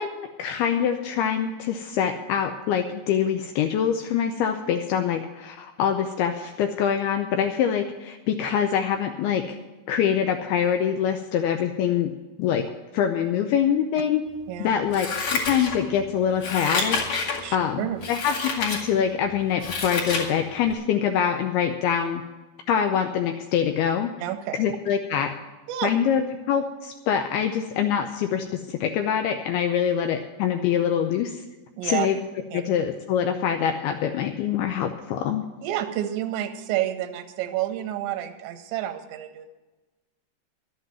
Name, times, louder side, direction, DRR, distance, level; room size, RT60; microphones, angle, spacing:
voice 1, 0.0-9.4 9.9-12.1 12.4-12.6 12.9-14.2 14.6-15.1 15.3-17.0 17.3-22.2 22.7-24.1 24.5-25.3 25.8-31.4 31.8-32.3 32.5-35.5, left 8 dB, 85° left, 5 dB, 2.3 m, -24 dB
Scissors, 14.9-16.0 16.4-17.4 18.0-18.8 19.3-20.3 20.7-20.8, left 4 dB, 45° left, 2.6 m, -28 dB
voice 2, 17.4-18.0 24.2-24.6 25.7-25.9 31.8-32.1 32.5-32.6 35.6-39.5, right 12 dB, 80° right, 9 dB, 3.1 m, -29 dB
12.0 x 7.7 x 9.0 m, 1.2 s
omnidirectional pair, 5.2 m